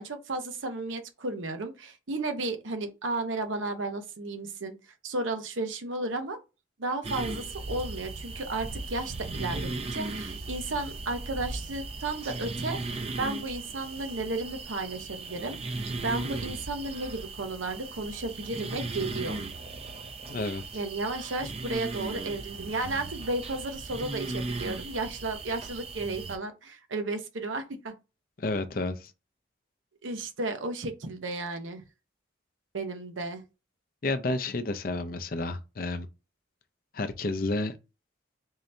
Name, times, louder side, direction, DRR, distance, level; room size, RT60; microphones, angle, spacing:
voice 1, 0.0-4.7 5.0-6.4 6.8-19.4 20.7-27.9 30.0-31.8 32.7-33.4, right 2 dB, 90° right, 0.8 m, -33 dB
sound 1, 7.0-26.4, right 3 dB, 30° right, 0.4 m, -37 dB
voice 2, 20.3-20.8 28.4-29.1 34.0-36.1 36.9-37.7, left 2 dB, 50° left, 0.5 m, -31 dB
3.8 x 2.7 x 3.2 m
head